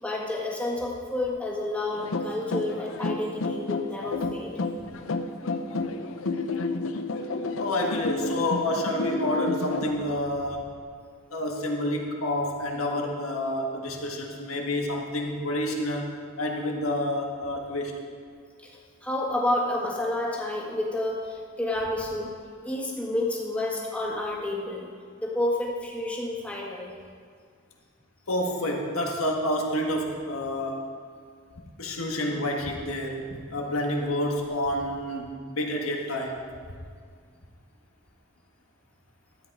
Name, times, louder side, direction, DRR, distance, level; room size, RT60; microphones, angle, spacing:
voice 1, 0.0-4.5 18.6-22.3 22.6-24.9 25.2-27.0, left 1 dB, 5° left, -3 dB, 1.6 m, -30 dB
sound 1, 1.9-9.9, left 3 dB, 70° left, 0.6 m, -30 dB
voice 2, 7.6-10.7 11.3-18.0 28.3-30.8 31.8-36.4, left 1 dB, 90° left, 1 dB, 1.7 m, -29 dB
13.0 x 8.7 x 4.8 m, 2.1 s
head